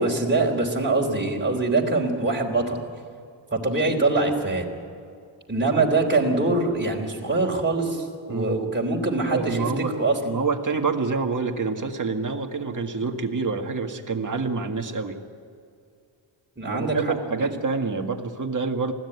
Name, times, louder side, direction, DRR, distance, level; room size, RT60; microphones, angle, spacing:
voice 1, 0.0-2.8 3.5-4.7 5.5-10.2 16.6-17.5, right 3 dB, 20° right, -1 dB, 3.6 m, -24 dB
voice 2, 8.3-8.7 9.3-9.9 10.2-15.2 16.6-18.9, right 4 dB, 40° right, 4 dB, 2.0 m, -27 dB
20.5 x 16.0 x 9.7 m, 2.3 s
wide cardioid pair, 95°, 48 cm